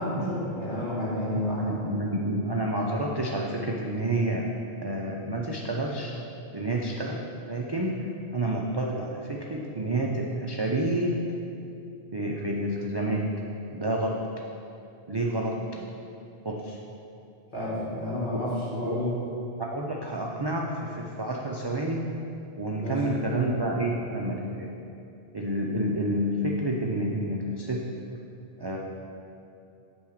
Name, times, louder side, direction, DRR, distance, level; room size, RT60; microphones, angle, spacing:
voice 1, 0.0-1.8 17.5-19.2 22.8-23.1, left 1 dB, 50° left, -7 dB, 2.1 m, -30 dB
voice 2, 1.6-4.5 4.8-6.1 6.5-8.0 8.3-11.2 12.1-13.3 13.7-14.2 15.1-15.6 16.4-16.8 18.3-18.4 18.8-19.0 19.6-22.0 22.6-24.7 25.3-27.8 28.6-28.8, right 1 dB, 35° right, -2 dB, 0.4 m, -29 dB
8.7 x 3.5 x 6.4 m, 2.7 s
omnidirectional pair, 1.1 m